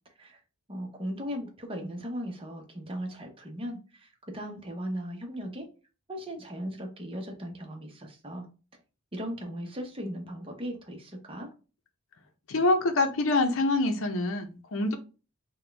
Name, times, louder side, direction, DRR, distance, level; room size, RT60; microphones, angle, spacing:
voice 1, 0.7-5.7 6.1-8.5 9.1-11.5, equal, 25° right, 3 dB, 0.8 m, -37 dB
voice 2, 12.5-15.0, left 2 dB, 65° left, 7 dB, 0.7 m, -25 dB
4.2 x 2.3 x 3.3 m, 0.33 s
head